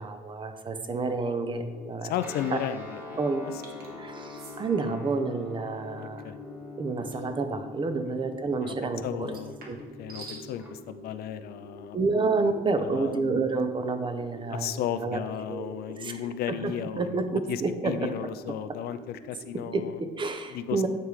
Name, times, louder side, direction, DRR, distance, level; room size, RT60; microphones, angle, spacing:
voice 1, 0.0-2.1 2.5-2.6 3.2-3.4 4.0-6.3 6.8-9.3 9.7-9.8 11.9-14.7 15.0-15.2 15.5-16.2 16.5-18.1 19.7-20.9, right 3 dB, 30° right, 8 dB, 0.7 m, -29 dB
sound 1, 1.0-20.3, right 1 dB, 85° right, 1.7 m, -48 dB
voice 2, 2.0-3.5 3.9-4.1 6.0-6.4 8.6-8.7 9.0-9.5 10.0-12.3 12.8-13.3 14.5-20.0 20.5-20.9, left 10 dB, 65° left, 11 dB, 0.4 m, -35 dB
Guitar, 2.2-10.7, left 3 dB, 10° right, 1.3 m, -44 dB
sound 2, 3.6-3.9 4.4-4.6 7.1-7.3 9.2-10.5, right 3 dB, 65° right, 1.6 m, -46 dB
8.9 x 3.3 x 4.8 m, 1.4 s
cardioid pair, 110°, 17 cm